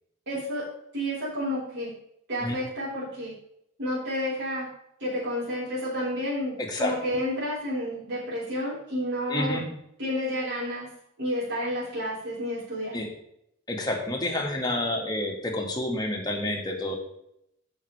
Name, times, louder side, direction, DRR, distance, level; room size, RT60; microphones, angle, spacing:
voice 1, 0.3-0.7 0.9-1.9 2.3-3.3 3.8-4.7 5.0-9.6 10.0-10.9 11.2-13.0, equal, 55° right, -10 dB, 4.0 m, -30 dB
voice 2, 9.3-9.7 12.9-13.1 13.7-16.9, left 1 dB, 20° left, 0 dB, 1.8 m, -29 dB
14.5 x 6.0 x 3.3 m, 0.77 s
head